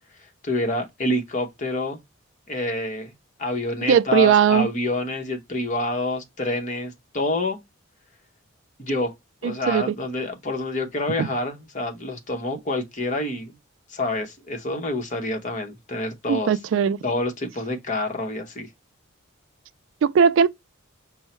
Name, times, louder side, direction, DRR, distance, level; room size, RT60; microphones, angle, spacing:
voice 1, 0.4-2.0 2.5-3.1 3.4-7.6 8.8-9.1 9.4-13.5 13.9-16.5 17.0-18.7, left 2 dB, 35° left, 0.9 m, -27 dB
voice 2, 3.9-4.7 9.4-10.0 11.2-11.3 16.3-17.0 20.0-20.5, right 7 dB, 65° right, 0.3 m, -19 dB
5.4 x 2.0 x 4.2 m
head